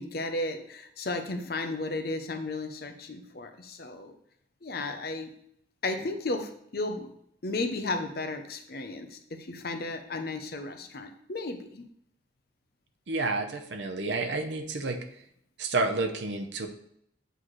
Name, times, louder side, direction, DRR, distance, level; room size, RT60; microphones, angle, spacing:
voice 1, 0.0-4.1 4.6-5.3 5.8-7.1 7.4-11.8, left 2 dB, 55° left, 6 dB, 0.7 m, -34 dB
voice 2, 13.1-15.0 15.6-16.7, right 3 dB, 85° right, 6 dB, 0.7 m, -30 dB
7.9 x 4.0 x 3.2 m, 0.72 s
head